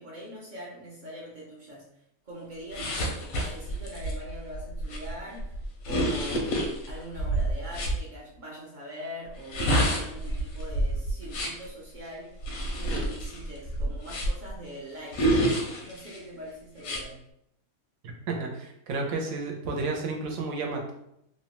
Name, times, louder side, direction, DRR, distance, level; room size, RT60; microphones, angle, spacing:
voice 1, 0.0-1.9 2.3-5.6 5.9-12.4 12.8-17.3, equal, 50° right, -5 dB, 0.5 m, -42 dB
sound 1, 2.7-8.0 9.3-11.7 12.4-14.5 15.1-16.2 16.8-17.0, right 1 dB, 85° left, 1.0 m, -28 dB
voice 2, 18.0-20.9, right 3 dB, 75° right, 1 dB, 1.0 m, -32 dB
2.8 x 2.1 x 2.9 m, 0.79 s
omnidirectional pair, 1.5 m